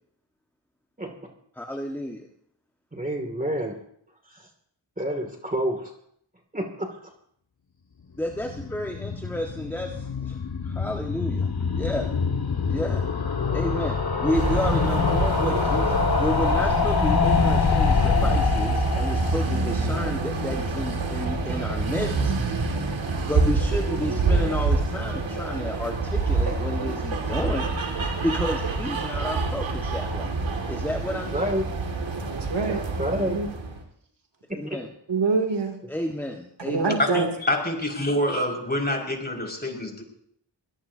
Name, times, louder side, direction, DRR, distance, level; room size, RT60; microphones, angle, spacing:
voice 1, 1.5-2.3 8.1-10.4 10.6-12.1 12.7-13.0 13.5-22.4 23.2-27.7 28.2-30.4 30.7-31.4 34.6-34.9 35.9-37.0, left 1 dB, 5° left, 2 dB, 1.7 m, -31 dB
voice 2, 2.9-3.8 4.3-4.4 5.0-5.9 6.5-6.9 31.3-31.6 32.7-33.4 34.6-34.8, equal, 20° right, 2 dB, 2.6 m, -28 dB
sound 1, 8.2-21.3 21.6-21.7 21.9-22.0 22.2-22.3, left 5 dB, 55° left, 1.8 m, -25 dB
sound 2, 14.3-33.8, right 3 dB, 80° right, 2.4 m, -27 dB
voice 3, 32.3-32.8 33.1-33.5 35.1-35.8 36.6-37.3, right 4 dB, 65° right, 3 dB, 2.9 m, -25 dB
voice 4, 37.0-40.0, left 1 dB, 20° left, 1 dB, 5.8 m, -26 dB
23.0 x 18.0 x 2.8 m, 0.68 s
cardioid pair, 45°, 46 cm